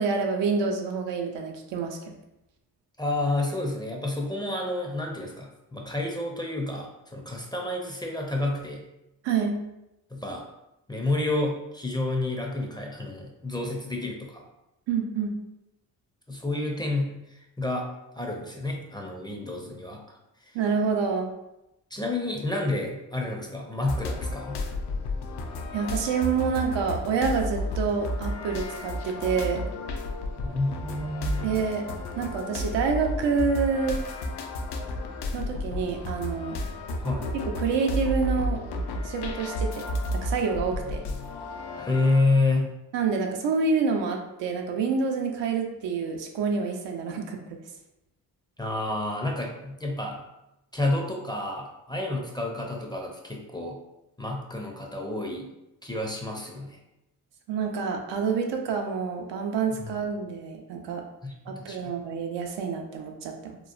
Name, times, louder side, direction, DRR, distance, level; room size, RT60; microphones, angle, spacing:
voice 1, 0.0-2.1 9.2-9.6 14.9-15.3 20.5-21.3 25.7-29.7 31.4-31.8 32.2-34.0 35.3-36.6 37.6-38.6 39.0-39.8 40.1-41.0 42.9-47.4 57.5-61.0 61.5-63.6, right 5 dB, 75° right, 2 dB, 0.5 m, -27 dB
voice 2, 3.0-8.8 10.1-10.4 10.9-14.4 16.3-17.9 18.1-20.0 20.5-20.6 21.9-24.6 30.4-31.5 37.0-37.3 41.8-42.8 48.6-50.2 50.7-53.8 54.2-55.5 55.8-56.8 59.8-60.0 61.2-61.9, left 2 dB, 10° left, 0 dB, 0.5 m, -29 dB
sound 1, 23.9-42.2, left 1 dB, 65° left, 0.5 m, -32 dB
2.9 x 2.0 x 2.4 m, 0.89 s
supercardioid pair, 50°, 44 cm